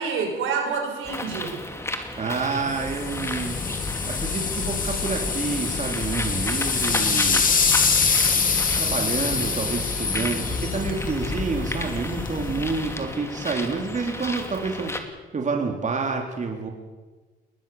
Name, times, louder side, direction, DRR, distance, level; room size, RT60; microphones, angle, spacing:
voice 1, 0.0-1.6, right 5 dB, 85° right, 2 dB, 5.8 m, -27 dB
Bird, 1.0-15.0, left 1 dB, 15° left, 2.7 m, -34 dB
voice 2, 2.2-3.6 4.1-7.5 8.7-15.0 15.3-16.7, right 4 dB, 40° right, 2 dB, 3.2 m, -28 dB
sound 1, 2.7-12.9, left 5 dB, 45° left, 3.1 m, -25 dB
21.0 x 20.0 x 7.1 m, 1.3 s
cardioid pair, 90°, 20 cm